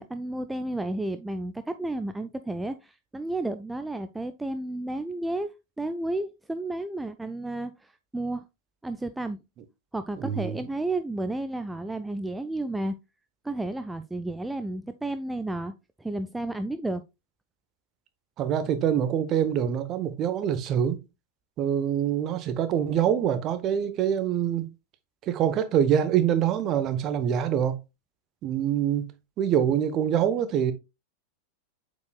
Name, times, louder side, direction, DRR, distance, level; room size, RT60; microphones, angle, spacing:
voice 1, 0.0-5.5 5.8-8.4 8.8-9.4 9.9-12.9 13.4-17.0, right 2 dB, 5° right, 0.4 m, -32 dB
voice 2, 10.2-10.6 18.4-21.0 21.6-24.7 25.3-27.8 28.4-29.1 29.4-30.7, right 9 dB, 35° right, 0.9 m, -25 dB
8.0 x 5.3 x 2.2 m
figure-of-eight pair, 90°, 0 cm